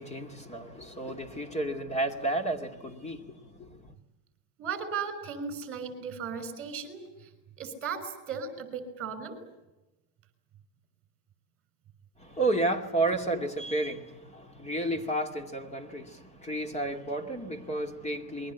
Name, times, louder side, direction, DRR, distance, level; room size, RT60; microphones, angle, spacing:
voice 1, 0.0-3.7 12.2-18.5, right 2 dB, 15° left, 2.4 m, -32 dB
voice 2, 4.6-7.3 7.6-9.4, right 6 dB, 25° right, 5.8 m, -36 dB
28.0 x 22.0 x 8.3 m
supercardioid pair, 155°, 49 cm